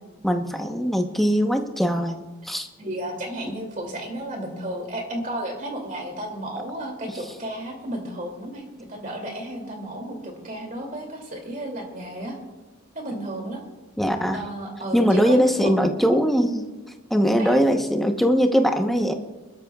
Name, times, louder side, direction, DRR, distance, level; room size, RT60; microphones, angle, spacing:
voice 1, 0.2-2.2 2.4-2.7 14.0-14.5 14.9-16.6 17.1-19.1, equal, ahead, 4 dB, 0.9 m, -21 dB
voice 2, 2.8-12.4 12.9-13.6 14.3-15.7 17.4-17.6, right 1 dB, 35° right, 2 dB, 2.6 m, -33 dB
29.0 x 13.0 x 2.4 m, 1.2 s
head